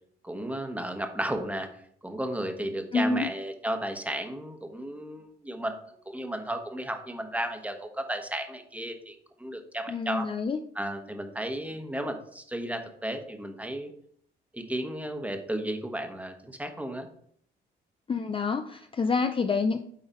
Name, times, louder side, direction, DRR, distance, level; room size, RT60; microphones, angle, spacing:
voice 1, 0.2-5.8 6.0-10.3 10.7-13.9 14.5-17.1, right 1 dB, 5° right, 5 dB, 1.2 m, -34 dB
voice 2, 2.9-3.3 9.9-10.6 18.1-19.8, left 4 dB, 25° left, 7 dB, 0.5 m, -27 dB
9.1 x 3.9 x 4.3 m, 0.64 s
cardioid pair, 90°, 20 cm